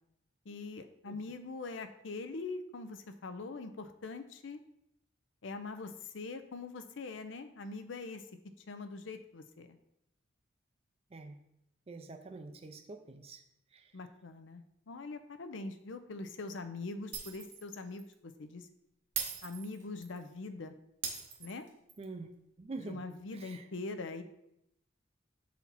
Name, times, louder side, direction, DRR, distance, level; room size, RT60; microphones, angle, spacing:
voice 1, 0.5-4.6 5.4-9.8 13.9-18.7 19.4-20.8 21.4-21.7 22.8-24.2, left 3 dB, 70° left, 9 dB, 0.6 m, -43 dB
voice 2, 11.9-13.4 22.0-22.3 22.6-23.0 23.4-23.6, right 3 dB, 30° right, 5 dB, 0.5 m, -45 dB
Shatter, 17.1-17.7 18.0-18.1 19.2-20.2 21.0-22.0, right 7 dB, 65° right, 1.1 m, -40 dB
7.2 x 4.2 x 4.1 m, 0.80 s
head